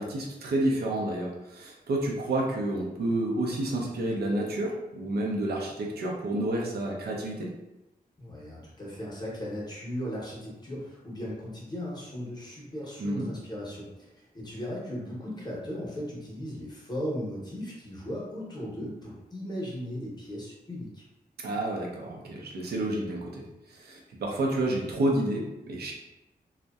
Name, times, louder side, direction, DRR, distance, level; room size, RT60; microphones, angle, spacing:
voice 1, 0.0-7.5 13.0-13.3 21.4-23.4 23.7-25.9, right 1 dB, 90° right, -1 dB, 0.5 m, -30 dB
voice 2, 8.2-21.0, equal, 25° left, -5 dB, 0.6 m, -37 dB
2.6 x 2.1 x 2.2 m, 0.97 s
wide cardioid pair, 170°, 16 cm